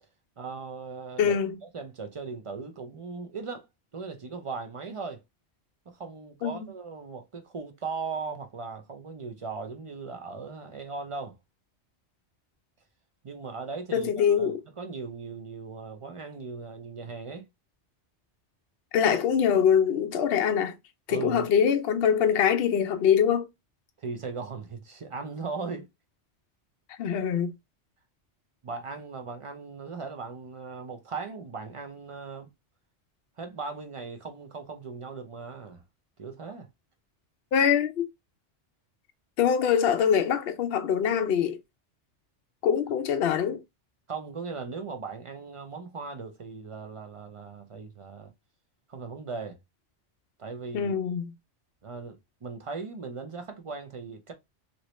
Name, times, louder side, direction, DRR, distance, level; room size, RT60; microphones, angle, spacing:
voice 1, 0.4-1.4 1.7-3.7 3.9-5.2 5.9-11.4 13.2-17.5 21.1-21.5 24.0-25.9 28.6-32.5 33.4-35.8 36.2-36.7 44.1-48.3 48.9-49.6 50.4-50.9 51.8-54.3, right 4 dB, 40° right, 0.4 m, -38 dB
voice 2, 1.2-1.6 6.4-6.7 13.9-14.6 18.9-20.7 21.1-23.5 27.0-27.5 37.5-38.1 39.4-41.6 42.6-43.6 50.7-51.3, left 8 dB, 65° left, 0.7 m, -24 dB
2.9 x 2.6 x 3.0 m
omnidirectional pair, 1.2 m